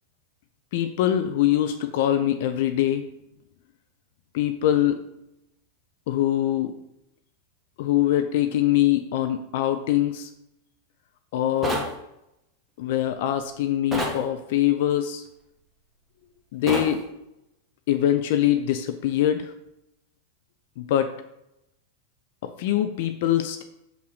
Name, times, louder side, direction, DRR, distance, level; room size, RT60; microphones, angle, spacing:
voice 1, 0.7-3.0 4.3-5.0 6.1-6.7 7.8-10.3 11.3-11.8 12.8-15.2 16.5-17.0 17.9-19.5 20.8-21.1 22.4-23.6, left 12 dB, 50° left, 8 dB, 0.5 m, -23 dB
sound 1, 11.6-11.9 13.9-14.2 16.7-16.9, right 1 dB, ahead, 1.6 m, -27 dB
6.4 x 5.5 x 3.9 m, 0.83 s
figure-of-eight pair, 90°, 0 cm